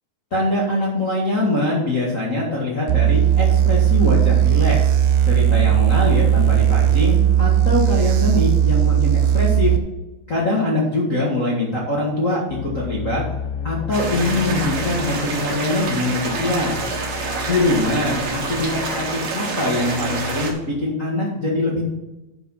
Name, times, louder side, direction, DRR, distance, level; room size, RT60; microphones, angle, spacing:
voice 1, 0.3-4.9 5.2-9.7 10.3-13.2 13.6-16.8 17.5-21.9, left 2 dB, 65° left, -5 dB, 0.8 m, -23 dB
sound 1, 2.9-9.8, right 10 dB, 90° right, 3.1 m, -17 dB
sound 2, 12.5-20.5, left 6 dB, 85° left, 2.8 m, -33 dB
sound 3, 13.9-20.5, right 3 dB, 50° right, 2.5 m, -27 dB
11.0 x 5.1 x 5.6 m, 1.0 s
omnidirectional pair, 5.0 m